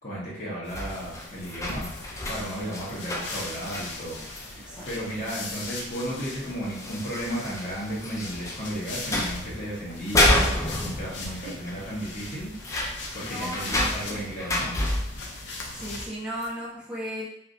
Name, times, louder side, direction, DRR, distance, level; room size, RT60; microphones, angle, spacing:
voice 1, 0.0-1.9 2.3-12.5 13.1-14.7, right 1 dB, 45° left, -6 dB, 1.3 m, -34 dB
sound 1, 0.6-16.1, left 2 dB, 80° left, 0.6 m, -40 dB
sound 2, 0.7-4.6 5.6-5.7 6.1-6.2 6.7-8.7 9.0-9.5 10.0-11.4 11.7-11.8 12.1-15.3 16.4-16.5, left 1 dB, 15° left, 0.4 m, -29 dB
voice 2, 13.2-14.3 15.7-17.3, equal, 5° right, -8 dB, 0.8 m, -36 dB
3.3 x 2.7 x 2.6 m, 0.70 s
head